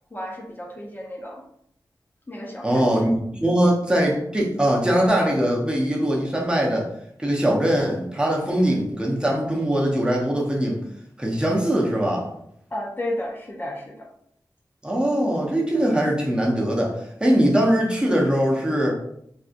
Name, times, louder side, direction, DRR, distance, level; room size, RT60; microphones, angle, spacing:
voice 1, 0.1-1.4 2.3-3.0 3.3-3.5 12.7-14.1, left 1 dB, 25° left, -1 dB, 0.5 m, -33 dB
voice 2, 2.6-6.9 7.2-10.8 11.2-12.3 14.8-18.9, right 1 dB, 10° right, -2 dB, 0.7 m, -21 dB
3.4 x 2.7 x 2.5 m, 0.72 s
wide cardioid pair, 100°, 8 cm